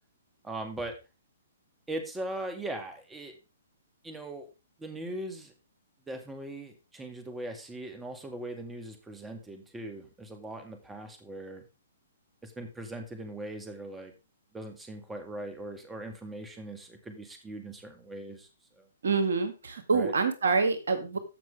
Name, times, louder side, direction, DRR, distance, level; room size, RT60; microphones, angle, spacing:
voice 1, 0.4-1.0 1.9-3.3 4.0-4.5 4.8-5.5 6.1-11.7 12.4-14.1 14.5-18.5 18.8-18.9 19.9-20.1, right 1 dB, 10° right, 5 dB, 2.1 m, -40 dB
voice 2, 19.0-21.2, right 4 dB, 75° right, 9 dB, 2.0 m, -26 dB
15.0 x 6.0 x 3.5 m, 0.28 s
hypercardioid pair, 125°, 0 cm